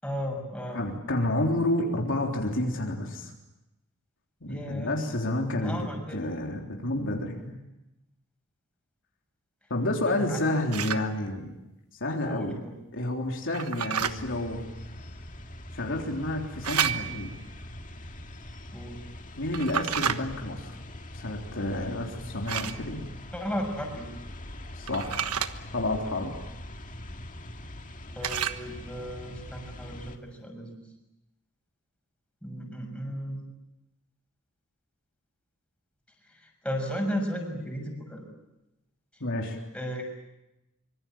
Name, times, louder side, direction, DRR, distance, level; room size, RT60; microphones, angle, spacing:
voice 1, 0.0-0.8 4.5-5.0 5.6-6.2 10.2-10.4 12.2-12.7 18.7-19.0 23.3-24.1 28.1-30.8 32.4-33.4 36.3-38.2 39.7-40.0, equal, 5° left, 1 dB, 6.4 m, -34 dB
voice 2, 0.7-3.3 4.4-7.6 9.7-11.5 12.0-12.6 12.9-14.7 15.7-17.3 19.4-20.8 21.1-23.1 24.8-25.2 25.7-26.3 39.2-39.6, left 1 dB, 60° left, 1 dB, 3.6 m, -30 dB
sound 1, 10.7-11.0 13.5-14.1 16.6-17.3 19.5-20.2 22.5-22.8 24.9-25.5 28.2-28.7, right 8 dB, 85° right, 1.3 m, -29 dB
sound 2, 14.0-30.2, left 1 dB, 35° left, 2.0 m, -43 dB
25.0 x 24.5 x 8.9 m, 0.94 s
head